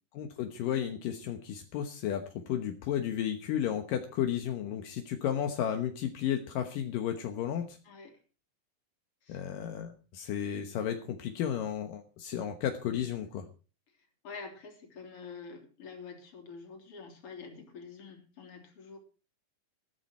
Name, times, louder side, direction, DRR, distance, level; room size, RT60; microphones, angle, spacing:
voice 1, 0.2-7.8 9.3-13.5, left 9 dB, 75° left, 5 dB, 2.8 m, -33 dB
voice 2, 7.8-8.2 9.2-9.5 14.2-19.0, left 5 dB, 40° left, 3 dB, 4.0 m, -47 dB
14.0 x 14.0 x 4.4 m, 0.34 s
omnidirectional pair, 4.0 m